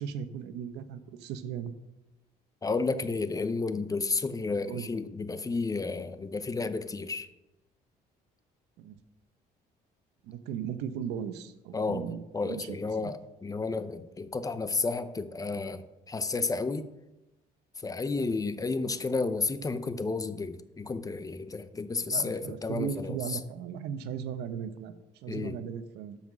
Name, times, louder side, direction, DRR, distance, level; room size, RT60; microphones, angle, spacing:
voice 1, 0.0-1.7 4.6-4.9 8.8-9.0 10.2-13.1 22.0-26.2, right 8 dB, 90° right, 11 dB, 0.9 m, -37 dB
voice 2, 2.6-7.3 11.7-12.0 12.3-16.9 17.8-23.4 25.3-25.6, left 3 dB, 20° left, 12 dB, 0.7 m, -32 dB
12.0 x 5.8 x 6.2 m, 0.97 s
cardioid pair, 110°, 17 cm